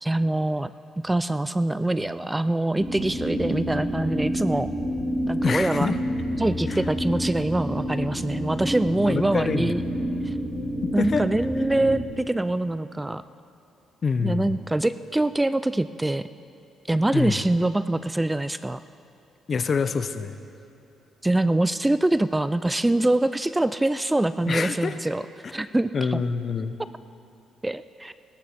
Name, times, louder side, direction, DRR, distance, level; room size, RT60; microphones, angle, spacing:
voice 1, 0.0-0.7 1.0-4.7 5.3-5.9 6.4-9.8 10.2-10.3 10.9-13.2 14.2-16.2 16.9-18.8 21.2-25.2 25.5-26.2 27.6-28.1, right 1 dB, 10° right, 14 dB, 0.3 m, -24 dB
sound 1, 2.8-12.0, equal, 20° left, 2.2 m, -29 dB
voice 2, 5.4-6.0 6.7-6.8 9.1-9.7 10.8-11.2 14.0-14.5 17.1-17.4 19.5-20.3 24.5-24.9 25.4-25.5 25.9-26.7, left 5 dB, 45° left, 11 dB, 0.7 m, -26 dB
17.5 x 13.0 x 4.3 m, 2.8 s
cardioid pair, 90°, 0 cm